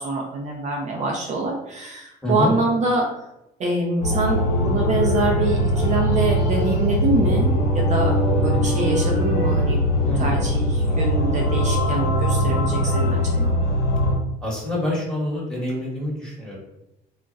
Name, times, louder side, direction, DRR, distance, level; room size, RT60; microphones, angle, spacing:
voice 1, 0.0-3.1 3.6-8.1 8.4-9.8 10.2-13.5, right 2 dB, 45° right, -1 dB, 0.5 m, -25 dB
sound 1, 4.0-14.2, equal, 70° left, 0.8 m, -21 dB
voice 2, 10.1-10.4 14.4-16.6, left 1 dB, 5° left, -5 dB, 1.2 m, -26 dB
2.3 x 2.1 x 3.8 m, 0.87 s
cardioid pair, 110°, 17 cm